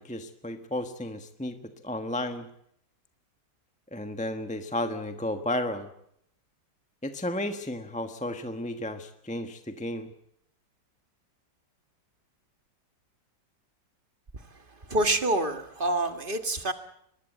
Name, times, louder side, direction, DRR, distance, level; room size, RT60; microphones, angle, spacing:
voice 1, 0.0-1.6 1.8-2.5 3.9-5.9 7.0-10.1, left 1 dB, 5° left, 7 dB, 1.1 m, -33 dB
voice 2, 14.9-16.7, right 1 dB, 30° right, 8 dB, 1.8 m, -26 dB
23.5 x 21.0 x 8.0 m, 0.73 s
omnidirectional pair, 2.0 m